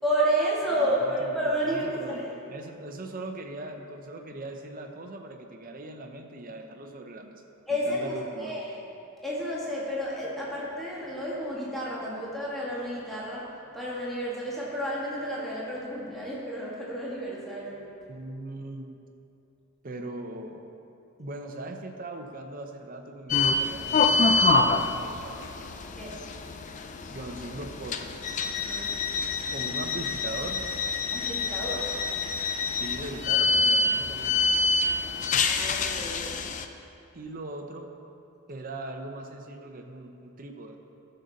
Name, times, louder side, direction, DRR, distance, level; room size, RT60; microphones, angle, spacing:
voice 1, 0.0-1.1 1.3-2.3 7.7-8.8 9.2-13.5 13.7-17.8 25.9-26.2 28.5-28.9 31.1-31.9 35.4-36.3, equal, ahead, -7 dB, 1.7 m, -31 dB
voice 2, 0.8-1.4 1.6-2.2 2.5-7.4 7.7-8.6 18.1-18.9 19.8-20.6 21.2-25.5 27.1-28.1 29.5-30.6 32.7-34.4 37.1-37.9 38.5-40.8, right 2 dB, 40° right, 3 dB, 0.8 m, -40 dB
sound 1, 23.3-36.6, left 3 dB, 35° left, 0.4 m, -26 dB
14.0 x 6.7 x 4.1 m, 2.7 s
head